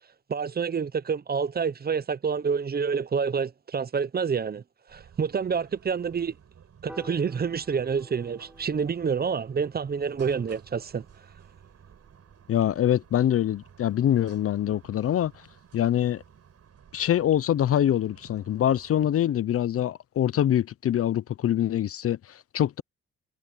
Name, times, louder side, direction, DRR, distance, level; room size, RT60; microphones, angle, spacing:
voice 1, 0.3-4.6 4.9-6.3 6.8-11.0, right 6 dB, 30° right, 0.7 m, -28 dB
sound 1, 4.9-19.1, right 8 dB, 55° right, 8.0 m, -54 dB
Piano, 6.9-13.2, right 1 dB, 5° right, 4.8 m, -53 dB
voice 2, 12.5-15.3 15.7-16.2 16.9-22.8, left 11 dB, 50° left, 0.6 m, -24 dB
cardioid pair, 90°, 30 cm